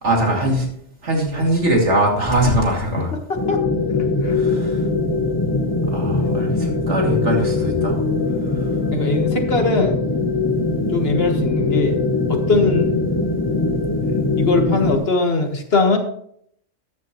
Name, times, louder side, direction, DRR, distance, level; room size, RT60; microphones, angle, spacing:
voice 1, 0.0-0.7 1.0-3.1 4.2-4.8 5.9-8.0 8.5-8.7 14.1-14.2, right 1 dB, 75° right, 0 dB, 2.9 m, -21 dB
sound 1, 3.3-15.0, left 3 dB, 20° left, 1.0 m, -21 dB
voice 2, 3.9-4.4 8.9-10.0 10.9-12.0 12.3-12.9 14.4-16.0, left 3 dB, 55° left, 4 dB, 1.7 m, -21 dB
13.5 x 10.0 x 3.1 m, 0.67 s
omnidirectional pair, 1.2 m